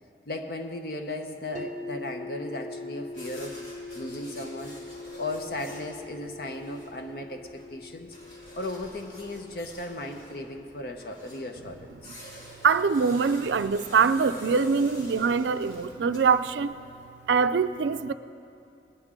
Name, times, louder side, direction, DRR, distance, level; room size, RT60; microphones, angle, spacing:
voice 1, 0.3-3.6 3.9-4.8 5.2-8.1 8.5-12.2, left 1 dB, 55° left, 5 dB, 0.7 m, -36 dB
sound 1, 1.5-13.5, left 3 dB, 45° right, 0.7 m, -43 dB
sound 2, 3.1-16.9, equal, 85° left, 3.2 m, -48 dB
voice 2, 12.6-16.8 17.3-18.1, right 5 dB, 80° right, 12 dB, 0.4 m, -23 dB
20.0 x 10.5 x 3.7 m, 2.6 s
head